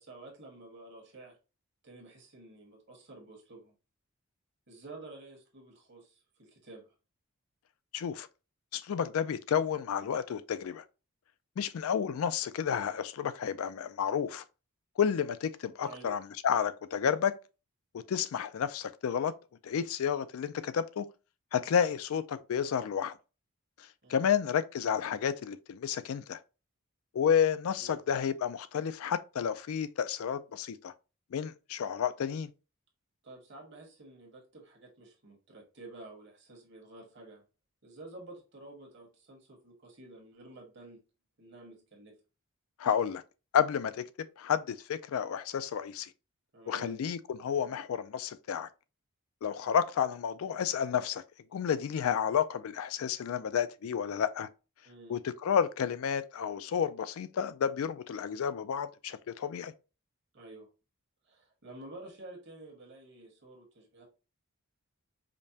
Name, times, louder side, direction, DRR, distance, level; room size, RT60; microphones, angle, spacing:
voice 1, 0.0-1.3 1.8-3.7 4.7-6.9 15.8-16.2 24.0-24.3 27.8-28.0 33.2-37.4 37.8-41.0 41.4-42.2 46.5-46.9 54.8-55.1 60.3-60.7 61.3-64.1, right 2 dB, 55° right, 1.3 m, -50 dB
voice 2, 7.9-8.3 8.7-10.8 11.6-14.4 15.0-17.3 18.1-19.3 19.6-21.1 21.5-23.1 24.1-26.4 27.1-30.9 31.3-32.5 42.8-43.2 43.5-44.0 44.4-46.1 46.7-48.7 49.4-51.2 51.5-54.5 55.1-59.7, left 8 dB, 75° left, 0.3 m, -31 dB
5.1 x 2.1 x 2.7 m
head